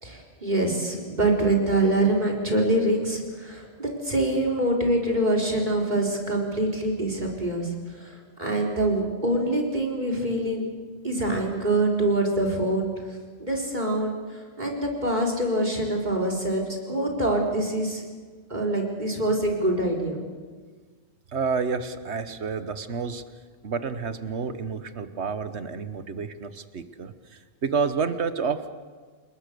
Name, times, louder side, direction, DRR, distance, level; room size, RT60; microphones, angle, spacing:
voice 1, 0.0-10.7 11.0-12.9 13.4-18.0 18.5-20.2, right 1 dB, 40° right, 2 dB, 4.3 m, -25 dB
voice 2, 21.3-23.2 23.6-27.1 27.6-28.7, right 5 dB, 80° right, 11 dB, 1.4 m, -29 dB
29.5 x 19.5 x 6.8 m, 1.5 s
omnidirectional pair, 1.1 m